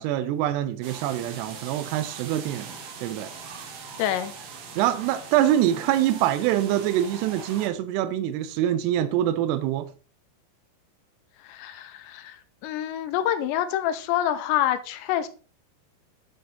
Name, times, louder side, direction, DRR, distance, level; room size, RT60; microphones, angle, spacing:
voice 1, 0.0-2.7 3.0-3.3 4.8-9.9, right 12 dB, 85° right, 2.6 m, -25 dB
sound 1, 0.8-7.7, right 5 dB, 65° right, 2.7 m, -41 dB
voice 2, 4.0-4.3 11.4-15.3, left 11 dB, 80° left, 2.9 m, -27 dB
9.5 x 3.9 x 4.0 m
omnidirectional pair, 5.1 m